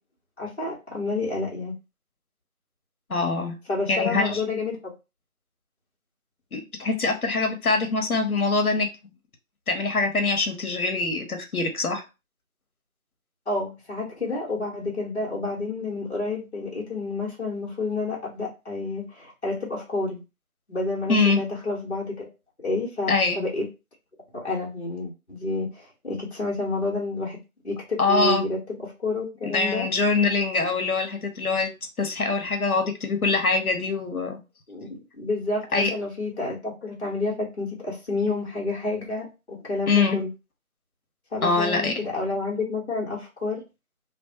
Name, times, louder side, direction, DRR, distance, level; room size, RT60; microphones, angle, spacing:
voice 1, 0.4-1.7 3.7-4.9 13.5-20.2 20.7-22.3 22.6-23.6 24.3-27.4 27.6-28.6 29.0-29.9 34.7-40.3 41.3-43.6, left 2 dB, 50° left, -3 dB, 0.9 m, -29 dB
voice 2, 3.1-3.6 3.9-4.4 6.5-9.1 9.7-12.0 21.1-21.4 23.1-23.4 28.0-28.4 29.5-31.7 32.0-34.4 35.7-35.9 39.9-40.2 41.4-42.0, left 3 dB, 80° left, 5 dB, 0.8 m, -24 dB
2.2 x 2.1 x 2.8 m, 0.27 s
figure-of-eight pair, 175°, 43 cm